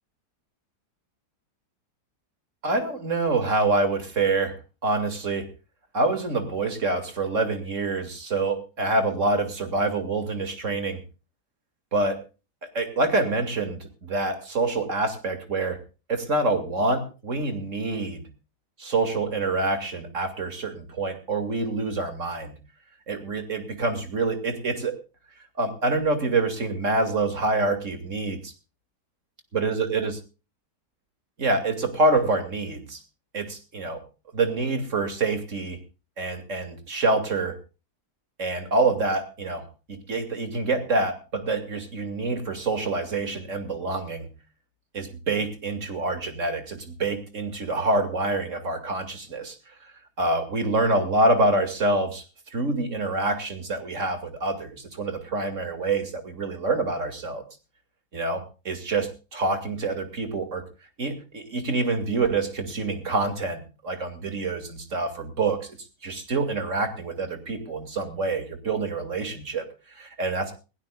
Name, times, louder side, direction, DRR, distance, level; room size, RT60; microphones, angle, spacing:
voice 1, 2.6-5.5 5.9-11.0 11.9-12.2 12.7-15.8 16.1-18.3 18.8-22.5 23.1-25.0 25.6-28.5 29.5-30.2 31.4-33.0 33.3-34.0 34.3-35.8 36.2-37.6 38.4-44.3 44.9-49.6 50.2-52.2 52.5-57.4 58.1-60.6 61.0-65.7 66.0-70.5, right 2 dB, 50° right, 8 dB, 2.8 m, -26 dB
21.0 x 17.5 x 2.4 m, 0.33 s
omnidirectional pair, 1.8 m